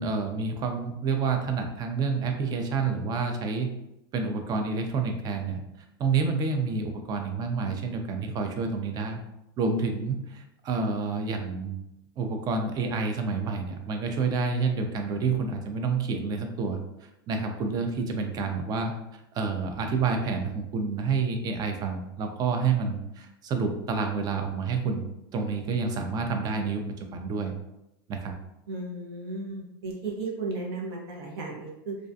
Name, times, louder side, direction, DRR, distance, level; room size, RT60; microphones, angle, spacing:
voice 1, 0.0-3.7 4.1-5.6 6.0-9.2 9.6-11.8 12.2-16.8 17.3-18.9 19.3-25.0 25.3-26.8 27.1-27.5 28.1-28.3, right 4 dB, 30° right, 4 dB, 0.4 m, -28 dB
voice 2, 28.7-32.0, right 3 dB, 80° right, -1 dB, 0.8 m, -35 dB
2.4 x 2.2 x 2.5 m, 0.88 s
supercardioid pair, 125°, 12 cm